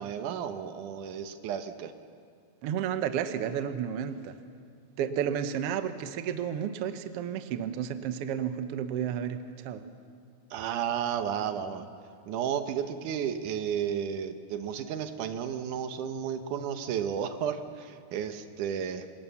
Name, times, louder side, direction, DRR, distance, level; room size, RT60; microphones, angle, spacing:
voice 1, 0.0-1.9 10.5-11.9 12.3-19.1, right 8 dB, 85° right, 8 dB, 2.6 m, -33 dB
voice 2, 2.6-4.3 5.0-9.8, right 9 dB, 65° right, 9 dB, 1.7 m, -32 dB
26.5 x 18.5 x 7.1 m, 2.3 s
omnidirectional pair, 3.5 m